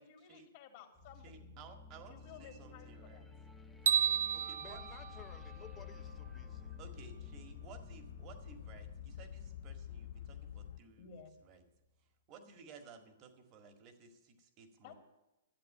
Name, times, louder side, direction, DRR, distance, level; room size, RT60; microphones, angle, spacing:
voice 1, 0.0-1.6 2.1-3.4 11.0-11.4 14.8-14.9, left 7 dB, 45° left, 3 dB, 2.2 m, -55 dB
sound 1, 0.9-11.9, left 3 dB, ahead, 1.1 m, -55 dB
voice 2, 1.2-3.2 4.3-4.8 6.8-11.6 12.3-14.9, right 5 dB, 30° right, 6 dB, 1.9 m, -56 dB
sound 2, 3.9-6.1, right 9 dB, 75° right, 0.4 m, -33 dB
voice 3, 4.6-6.7, left 8 dB, 20° left, 8 dB, 0.8 m, -56 dB
sound 3, 4.7-10.8, left 10 dB, 65° left, 0.3 m, -49 dB
12.0 x 7.9 x 8.6 m, 0.98 s
hypercardioid pair, 145°, 0 cm